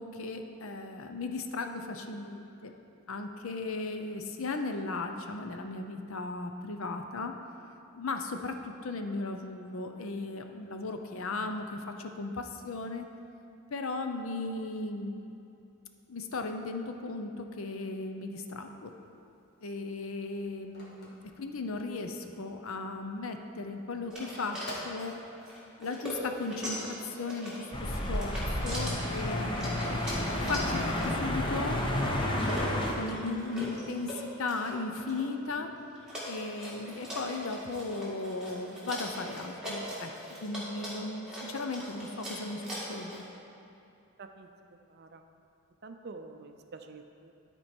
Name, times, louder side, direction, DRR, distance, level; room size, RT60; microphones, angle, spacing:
voice 1, 0.0-2.7 3.1-7.3 8.0-13.1 13.7-15.3 16.1-18.9 19.6-25.1 25.8-29.9 30.5-31.8 33.0-34.1 34.4-35.7 36.3-40.1 40.4-43.2, left 3 dB, 70° left, 5 dB, 0.6 m, -36 dB
Telephone, 18.7-22.1 22.5-22.6 22.9-25.7, equal, 45° left, 1.5 m, -47 dB
sound 1, 24.1-43.3, equal, 5° right, 1.7 m, -41 dB
sound 2, 27.7-32.9, left 1 dB, 20° left, 0.7 m, -31 dB
voice 2, 45.8-47.3, right 3 dB, 45° right, 6 dB, 0.4 m, -47 dB
12.5 x 4.5 x 4.4 m, 2.7 s
head